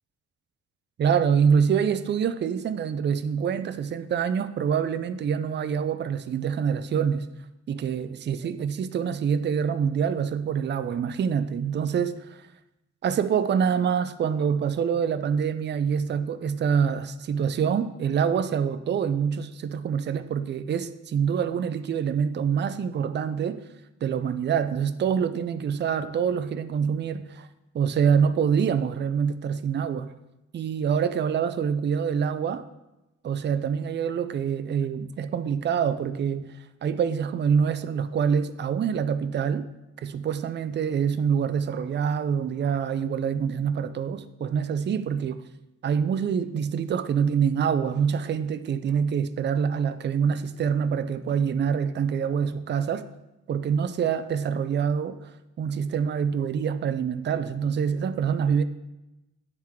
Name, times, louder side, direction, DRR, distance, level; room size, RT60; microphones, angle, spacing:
voice 1, 1.0-7.3 7.7-12.4 13.0-23.6 24.0-27.5 27.7-30.1 30.5-32.7 33.2-36.5 36.8-39.7 40.0-45.4 45.8-53.0 53.5-55.2 55.6-58.6, right 7 dB, 35° right, 0.4 m, -25 dB
9.4 x 3.6 x 4.4 m
cardioid pair, 90°, 30 cm